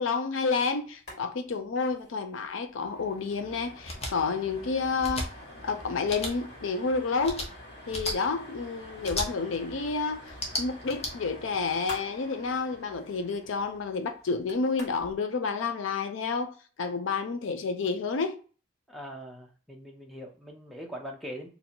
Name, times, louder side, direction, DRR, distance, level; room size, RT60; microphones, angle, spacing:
voice 1, 0.0-5.3 5.6-7.4 7.9-18.4, left 4 dB, 80° left, 0.5 m, -30 dB
sound 1, 0.9-1.2 1.5-1.6 1.9-2.1 2.5-15.2, equal, 55° left, 1.8 m, -47 dB
sound 2, 3.8-4.1 5.0-5.3 6.1-6.3 7.2-7.5 7.9-8.1 9.0-9.3 10.3-11.1, left 1 dB, 30° left, 0.8 m, -33 dB
voice 2, 18.9-21.5, equal, ahead, 0.6 m, -41 dB
2.8 x 2.7 x 4.3 m
head